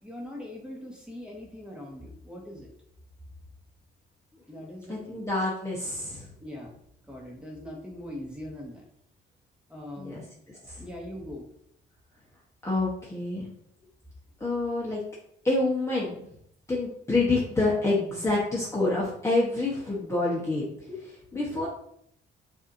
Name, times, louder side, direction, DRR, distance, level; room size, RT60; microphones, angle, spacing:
voice 1, 0.0-2.7 4.5-5.2 6.4-6.7 7.0-8.8 9.7-10.2 10.8-11.5, left 1 dB, 5° right, -2 dB, 1.4 m, -41 dB
voice 2, 4.9-6.3 10.0-10.2 10.6-10.8 12.6-13.5 14.4-15.0 15.4-16.2 16.7-21.7, left 2 dB, 15° left, -5 dB, 1.1 m, -27 dB
6.2 x 2.8 x 2.6 m, 0.71 s
cardioid pair, 90°, 20 cm